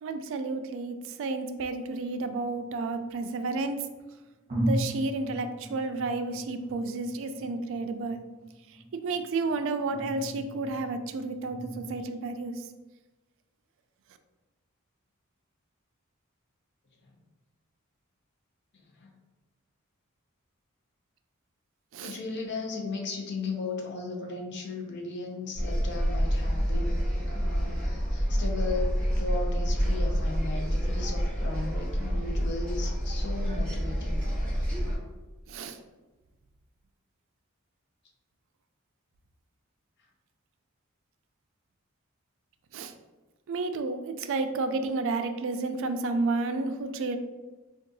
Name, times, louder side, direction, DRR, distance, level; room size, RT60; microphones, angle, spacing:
voice 1, 0.0-3.9 4.6-8.2 8.7-12.7 21.9-22.2 35.5-35.8 42.7-42.9 43.5-47.2, right 3 dB, 65° right, 8 dB, 0.3 m, -31 dB
sound 1, 2.1-3.4 4.0-4.1 4.5-12.0, right 1 dB, 35° right, 0.8 m, -37 dB
voice 2, 22.0-27.0 27.3-34.2, left 3 dB, 55° left, 0 dB, 0.6 m, -36 dB
sound 2, 25.6-35.0, equal, 5° left, 1.2 m, -28 dB
3.6 x 2.3 x 2.6 m, 1.2 s
head